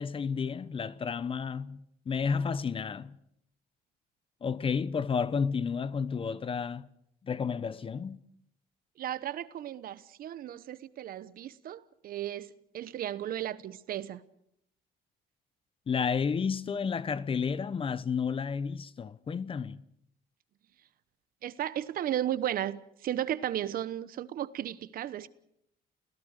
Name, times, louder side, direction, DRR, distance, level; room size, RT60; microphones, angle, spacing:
voice 1, 0.0-3.2 4.4-6.9 7.2-8.2 15.9-19.8, left 6 dB, 30° left, 0.9 m, -31 dB
voice 2, 9.0-14.2 21.4-25.3, right 11 dB, 60° right, 1.1 m, -35 dB
30.0 x 16.5 x 6.6 m
cardioid pair, 110°, 17 cm